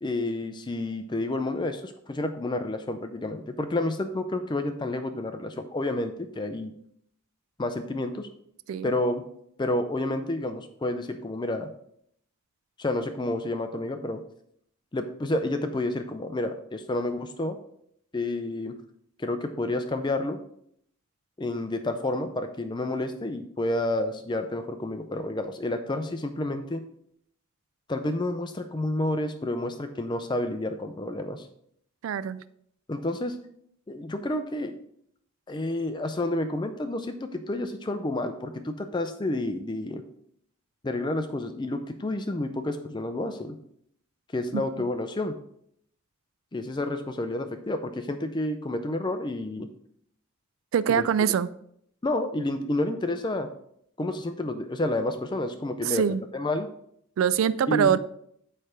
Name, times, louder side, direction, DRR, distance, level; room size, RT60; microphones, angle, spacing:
voice 1, 0.0-6.7 7.6-8.3 8.8-9.2 9.6-11.7 12.8-14.2 14.9-17.6 18.1-18.7 19.2-20.4 21.4-26.8 27.9-31.5 32.9-33.4 33.9-34.7 35.5-40.0 40.8-43.6 44.3-45.3 46.5-49.7 50.9-51.1 52.0-53.5 54.0-56.0 56.3-56.7 57.7-58.0, left 2 dB, 20° left, 8 dB, 0.4 m, -30 dB
voice 2, 32.0-32.4 44.5-44.6 50.7-51.5 55.8-56.2 57.2-58.0, right 8 dB, 70° right, 16 dB, 0.3 m, -23 dB
8.7 x 3.3 x 4.9 m, 0.69 s
head